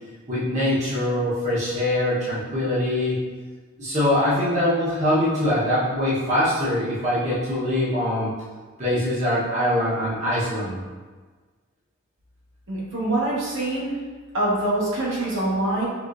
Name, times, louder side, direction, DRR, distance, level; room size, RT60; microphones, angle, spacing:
voice 1, 0.3-3.2 3.8-8.3 8.8-10.8, left 1 dB, 35° right, -10 dB, 1.1 m, -23 dB
voice 2, 12.7-13.9 14.3-15.9, right 1 dB, 60° right, -7 dB, 1.2 m, -24 dB
4.9 x 3.5 x 2.5 m, 1.4 s
head